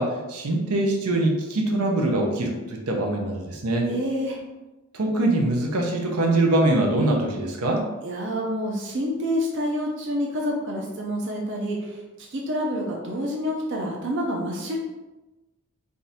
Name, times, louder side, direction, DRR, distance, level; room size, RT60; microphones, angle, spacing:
voice 1, 0.0-3.9 4.9-7.8, right 2 dB, 85° right, 1 dB, 0.8 m, -23 dB
voice 2, 3.8-4.4 8.0-14.8, equal, 55° right, -1 dB, 0.6 m, -28 dB
3.6 x 2.7 x 4.2 m, 1.1 s
head